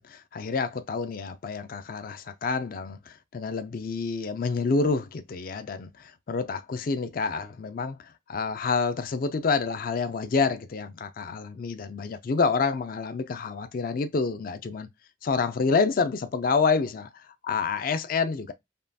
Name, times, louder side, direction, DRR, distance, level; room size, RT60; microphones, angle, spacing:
voice 1, 0.0-14.9 15.2-18.5, left 4 dB, 45° left, 0.4 m, -28 dB
5.3 x 2.2 x 2.6 m
head